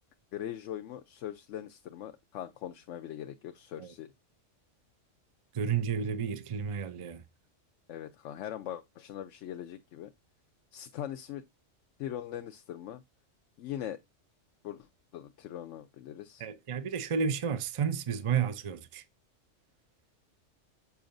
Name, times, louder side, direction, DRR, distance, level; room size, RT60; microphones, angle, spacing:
voice 1, 0.3-4.1 7.9-10.1 10.7-11.5 12.0-13.0 13.6-14.0 14.6-16.5, left 11 dB, 80° left, 0.9 m, -41 dB
voice 2, 5.5-7.2 16.4-19.0, right 7 dB, 45° right, 0.4 m, -31 dB
7.0 x 5.4 x 2.5 m
omnidirectional pair, 1.3 m